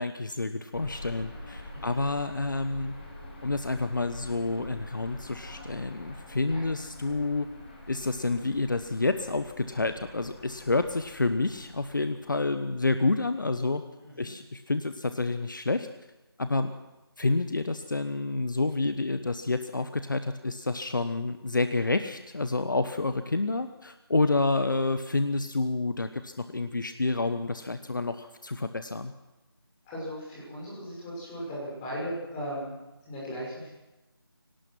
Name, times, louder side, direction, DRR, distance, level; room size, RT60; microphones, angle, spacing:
voice 1, 0.0-2.9 3.4-7.5 7.9-13.8 14.2-15.9 16.4-16.7 17.2-29.1, left 3 dB, 55° left, 10 dB, 1.1 m, -29 dB
sound 1, 0.7-12.3, left 2 dB, 25° left, 4.2 m, -46 dB
voice 2, 1.7-2.1 6.5-6.6 14.0-14.3 29.8-33.7, equal, 10° left, -6 dB, 6.1 m, -37 dB
24.0 x 18.0 x 6.1 m, 1.0 s
figure-of-eight pair, 165°, 13 cm